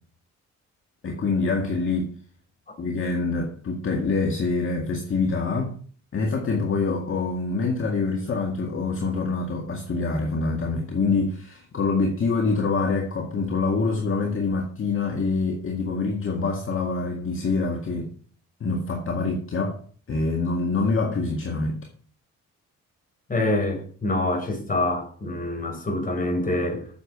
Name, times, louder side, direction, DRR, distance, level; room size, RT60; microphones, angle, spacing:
voice 1, 1.0-2.1 2.8-5.8 6.1-18.1 18.6-19.8 20.1-21.8, left 3 dB, 45° left, 2.0 m, -25 dB
voice 2, 23.3-26.9, left 2 dB, 30° left, 4.6 m, -26 dB
8.8 x 7.1 x 6.4 m
cardioid pair, 90°, 30 cm